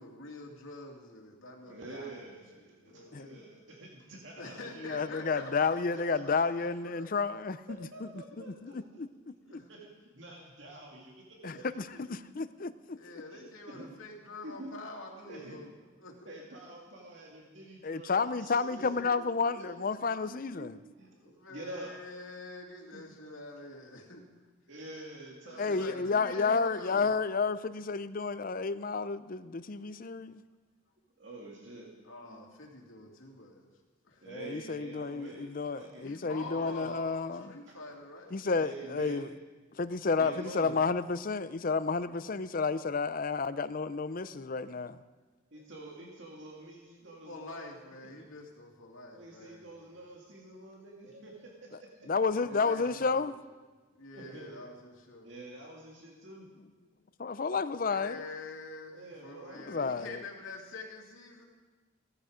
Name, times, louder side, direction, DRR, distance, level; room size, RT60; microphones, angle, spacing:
voice 1, 0.0-2.2 2.5-3.1 4.3-7.2 9.4-9.7 11.5-11.6 11.9-12.0 12.9-15.7 16.0-16.3 18.7-18.8 21.1-24.2 25.4-27.1 32.0-33.7 34.0-34.3 36.0-38.4 47.3-49.8 52.4-53.3 53.9-55.3 57.8-61.4, left 2 dB, 90° left, 0 dB, 2.8 m, -46 dB
voice 2, 1.7-6.4 7.7-9.0 9.7-11.6 13.3-13.9 14.4-14.7 15.3-15.6 16.3-18.9 19.6-19.8 20.2-21.9 22.9-23.0 24.7-26.0 31.2-31.9 32.3-32.4 34.2-36.9 37.7-37.8 38.5-39.4 40.2-40.8 45.5-47.8 48.0-48.2 49.1-52.1 52.5-52.6 52.9-53.0 54.1-54.6 55.2-56.4 58.9-60.1, right 1 dB, 65° right, -1 dB, 2.2 m, -48 dB
voice 3, 4.8-9.1 11.4-13.0 17.8-20.8 25.6-30.4 34.3-37.5 38.3-39.3 39.7-45.0 52.1-53.3 57.2-58.2 59.7-60.2, left 4 dB, 45° left, 13 dB, 0.5 m, -31 dB
16.5 x 14.0 x 5.0 m, 1.3 s
head